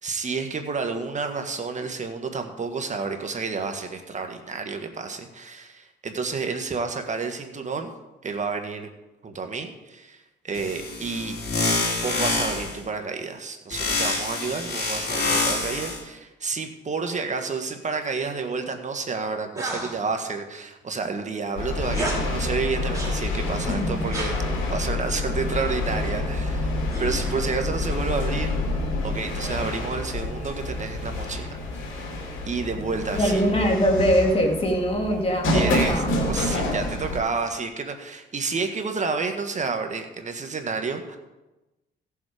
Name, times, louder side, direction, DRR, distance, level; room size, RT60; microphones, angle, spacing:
voice 1, 0.0-7.9 8.2-8.9 9.2-11.4 12.0-24.3 24.7-28.6 29.0-31.6 31.9-32.1 32.4-33.4 35.5-41.2, right 4 dB, 35° right, 5 dB, 1.7 m, -30 dB
sound 1, 10.5-12.8 13.7-16.0, left 3 dB, 55° left, 4.2 m, -26 dB
sound 2, 19.6-20.0 21.9-22.2 22.9-23.2 24.1-24.4 26.9-27.5, right 2 dB, 15° right, 4.1 m, -32 dB
sound 3, 21.6-37.2, left 2 dB, 80° left, 2.8 m, -28 dB
voice 2, 23.7-24.1 33.1-36.1, equal, 30° left, 2 dB, 2.5 m, -22 dB
16.5 x 7.3 x 5.1 m, 1.0 s
cardioid pair, 90°, 20 cm